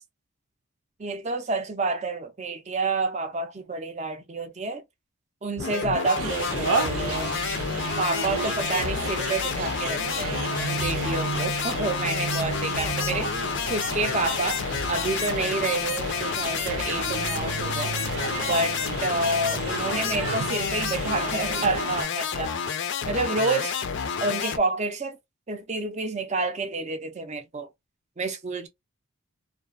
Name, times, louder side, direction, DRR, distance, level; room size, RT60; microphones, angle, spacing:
voice 1, 1.0-4.8 5.4-7.3 8.0-10.3 10.8-22.6 23.1-23.8 24.2-25.2 25.5-27.7 28.2-28.7, right 3 dB, 30° right, 0.5 m, -29 dB
sound 1, 5.6-24.6, left 6 dB, 50° left, 0.4 m, -30 dB
sound 2, 6.2-22.0, right 4 dB, 80° right, 0.7 m, -32 dB
2.4 x 2.3 x 2.3 m
head